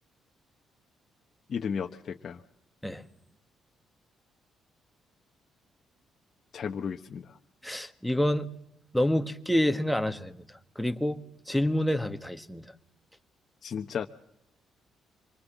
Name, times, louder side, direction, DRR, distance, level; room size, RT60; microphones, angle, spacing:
voice 1, 1.5-2.4 6.5-7.4 13.6-14.1, left 7 dB, 55° left, 3 dB, 1.0 m, -34 dB
voice 2, 7.6-8.5 8.9-10.4 10.8-12.6, left 1 dB, 5° left, 7 dB, 1.5 m, -28 dB
25.5 x 20.0 x 7.3 m, 0.83 s
cardioid pair, 90°, 0 cm